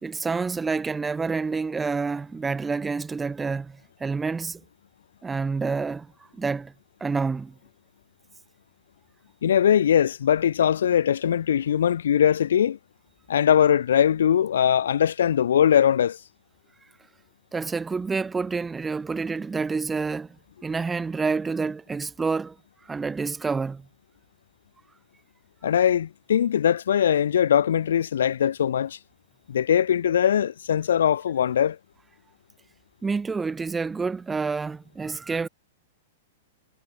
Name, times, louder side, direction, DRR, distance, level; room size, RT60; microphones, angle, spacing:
voice 1, 0.0-4.6 5.2-6.7 7.0-7.6 17.5-20.4 20.6-22.6 22.9-23.8 33.0-35.5, right 4 dB, 5° right, 1.6 m, -28 dB
voice 2, 9.4-12.8 13.3-16.2 25.6-29.0 29.5-31.8, left 9 dB, 85° left, 0.8 m, -21 dB
supercardioid pair, 180°, 0 cm